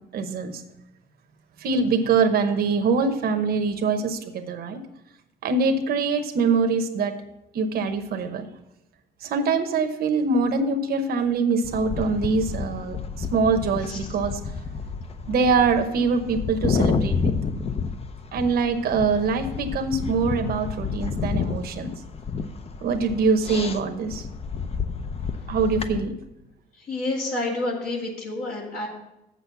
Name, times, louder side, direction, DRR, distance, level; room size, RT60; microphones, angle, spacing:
voice 1, 0.1-0.6 1.6-4.8 5.4-7.1 7.5-8.5 9.2-14.4 15.3-17.3 18.3-21.9 22.8-24.3 25.5-26.1, right 4 dB, 65° right, 6 dB, 1.0 m, -24 dB
sound 1, 11.6-26.0, left 5 dB, 35° left, 0.7 m, -30 dB
voice 2, 26.9-28.9, left 2 dB, 65° left, -2 dB, 2.3 m, -28 dB
7.6 x 6.3 x 6.9 m, 0.89 s
cardioid pair, 105°, 17 cm